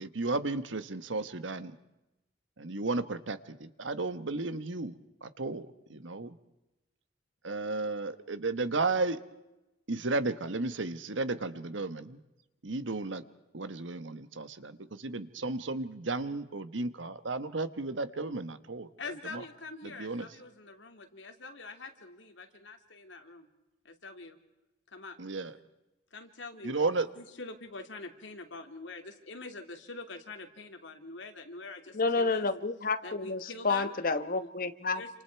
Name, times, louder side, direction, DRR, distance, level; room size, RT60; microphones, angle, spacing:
voice 1, 0.0-1.8 2.6-4.9 5.2-6.4 7.4-9.2 9.9-12.2 12.6-13.2 13.5-18.9 19.3-19.4 19.8-20.3 25.2-25.5 26.6-27.1, right 3 dB, 85° right, 12 dB, 1.3 m, -33 dB
voice 2, 19.0-23.5 23.8-24.4 24.9-25.2 26.1-32.5 33.0-33.9 34.9-35.2, left 3 dB, 75° left, 5 dB, 2.6 m, -45 dB
voice 3, 31.9-35.0, left 3 dB, 50° left, 10 dB, 1.2 m, -30 dB
28.0 x 27.0 x 4.7 m, 0.96 s
head